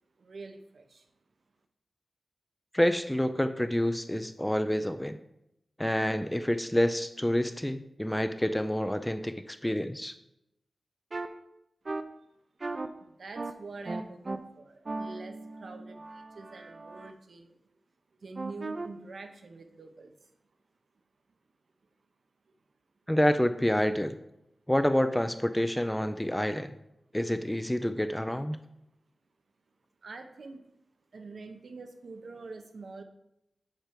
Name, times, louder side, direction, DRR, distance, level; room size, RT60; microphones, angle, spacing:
voice 1, 0.2-1.1 13.0-17.5 18.2-20.3 30.0-30.6 31.1-33.0, right 3 dB, 70° right, 6 dB, 0.8 m, -45 dB
voice 2, 2.7-5.2 5.8-10.2 23.1-24.2 24.7-26.7 27.1-28.6, left 1 dB, 10° left, 10 dB, 0.4 m, -28 dB
sound 1, 11.1-11.3 11.9-12.0 12.6-12.9 13.4-13.5 13.9-14.4 14.9-17.1 18.4-18.9, right 2 dB, 45° right, 0.5 m, -37 dB
7.4 x 4.4 x 5.1 m, 0.84 s
wide cardioid pair, 90°, 0 cm